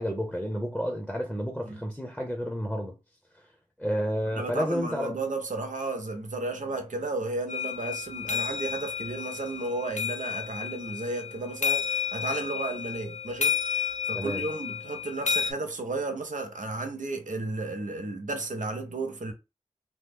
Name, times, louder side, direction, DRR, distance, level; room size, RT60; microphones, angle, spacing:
voice 1, 0.0-2.9 3.8-5.2 14.1-14.5, equal, ahead, 0.7 m, -30 dB
voice 2, 4.4-19.3, right 2 dB, 85° right, 0.7 m, -33 dB
sound 1, 7.5-15.5, left 7 dB, 70° left, 0.4 m, -31 dB
3.0 x 2.0 x 3.5 m
wide cardioid pair, 60°, 13 cm